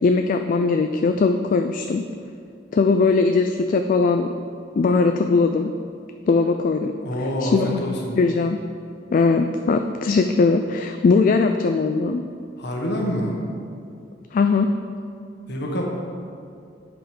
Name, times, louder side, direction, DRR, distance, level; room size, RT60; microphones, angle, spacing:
voice 1, 0.0-2.0 2.7-4.3 4.7-5.7 6.3-6.9 7.2-7.9 8.2-8.6 9.1-12.2 14.3-14.7, left 4 dB, 45° left, 6 dB, 0.3 m, -20 dB
voice 2, 7.0-8.2 12.6-13.3 15.5-15.8, equal, 65° left, -1 dB, 1.4 m, -26 dB
10.0 x 5.0 x 5.1 m, 2.5 s
head